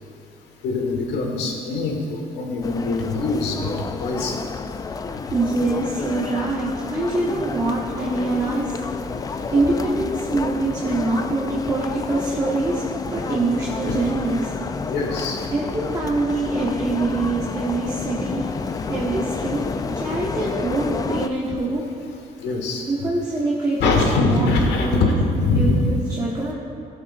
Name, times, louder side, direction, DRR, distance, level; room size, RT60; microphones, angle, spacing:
voice 1, 0.6-4.5 4.8-4.9 5.1-5.2 9.3-9.5 13.2-13.5 13.8-14.0 14.9-15.5 18.7-18.8 20.1-20.2 22.4-22.9 23.8-25.1 25.4-25.8, left 3 dB, 85° left, 1 dB, 1.5 m, -23 dB
sound 1, 2.6-21.3, left 4 dB, 20° left, 0.4 m, -30 dB
voice 2, 5.1-8.8 9.5-12.8 13.1-14.5 15.5-18.5 18.9-19.7 19.9-21.8 22.9-23.9 24.3-25.1 25.5-26.5, right 2 dB, 20° right, -6 dB, 1.3 m, -24 dB
15.5 x 7.5 x 2.5 m, 2.5 s
cardioid pair, 110°, 17 cm